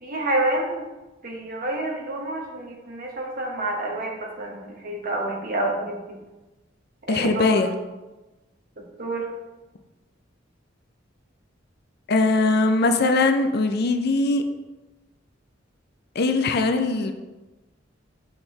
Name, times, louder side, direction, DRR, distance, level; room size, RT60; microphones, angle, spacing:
voice 1, 0.0-0.8 1.2-6.2 7.1-7.6 8.8-9.3, right 1 dB, 50° right, -1 dB, 1.2 m, -28 dB
voice 2, 7.1-7.7 12.1-14.4 16.2-17.1, left 3 dB, 55° left, 7 dB, 0.5 m, -21 dB
7.3 x 4.5 x 3.3 m, 1.1 s
head